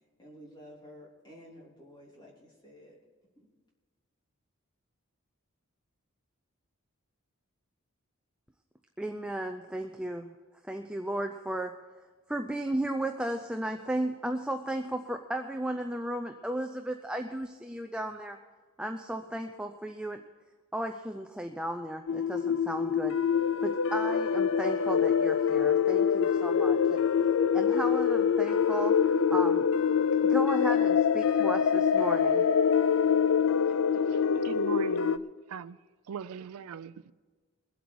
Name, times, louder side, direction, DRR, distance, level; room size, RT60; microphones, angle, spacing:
voice 1, 0.2-3.0 3.4-3.5, equal, 20° left, 3.1 m, -52 dB
voice 2, 9.0-10.3 10.6-11.8 12.3-18.4 18.8-20.2 20.7-23.2 23.6-27.0 27.5-29.7 30.2-32.4, right 1 dB, 5° right, 0.4 m, -35 dB
sound 1, 22.1-35.2, left 7 dB, 60° left, 0.4 m, -25 dB
voice 3, 33.9-35.8 36.1-37.1, right 7 dB, 80° right, 0.4 m, -41 dB
22.0 x 8.1 x 4.7 m
head